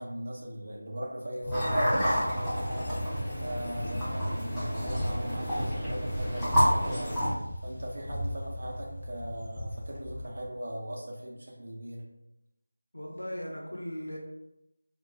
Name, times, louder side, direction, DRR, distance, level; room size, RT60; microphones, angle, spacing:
voice 1, 0.0-7.2 7.6-12.0, right 1 dB, 50° right, -2 dB, 0.7 m, -39 dB
sound 1, 1.4-10.5, equal, 35° left, 0.7 m, -37 dB
sound 2, 1.5-7.3, equal, ahead, 0.5 m, -29 dB
voice 2, 12.9-14.2, equal, 80° left, -1 dB, 0.8 m, -38 dB
3.9 x 2.4 x 2.3 m, 0.88 s
figure-of-eight pair, 170°, 0 cm